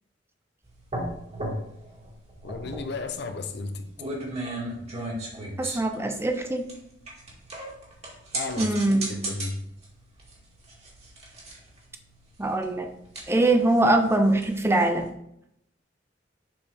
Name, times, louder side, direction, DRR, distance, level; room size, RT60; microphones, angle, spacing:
sound 1, 0.7-15.1, right 1 dB, 35° right, 2.0 m, -37 dB
voice 1, 2.4-3.9 8.3-9.6, left 3 dB, 65° left, 7 dB, 0.7 m, -34 dB
voice 2, 5.6-6.7 8.6-9.1 12.4-12.9 13.3-15.1, right 2 dB, 15° right, 6 dB, 0.7 m, -22 dB
7.2 x 4.9 x 3.5 m, 0.77 s
head